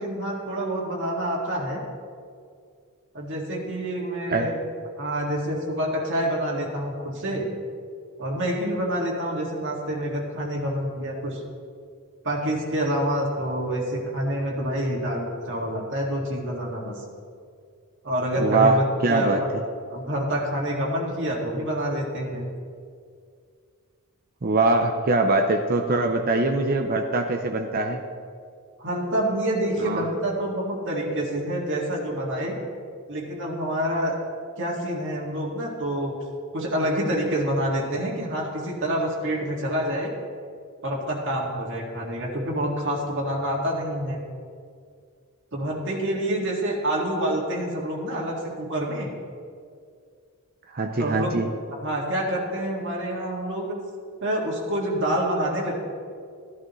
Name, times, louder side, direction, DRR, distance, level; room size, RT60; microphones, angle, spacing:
voice 1, 0.0-1.8 3.1-4.6 5.0-7.5 8.2-11.4 12.2-17.0 18.0-19.5 19.9-22.5 28.8-32.6 33.1-34.2 34.6-36.1 36.5-40.1 40.8-44.2 45.5-49.1 51.0-51.3 51.7-53.8 54.2-55.8, right 1 dB, 60° right, -2 dB, 2.0 m, -27 dB
voice 2, 18.4-19.4 24.4-28.0 29.8-30.0 50.7-51.5, right 2 dB, 45° right, 4 dB, 0.6 m, -22 dB
15.5 x 11.5 x 3.1 m, 2.2 s
head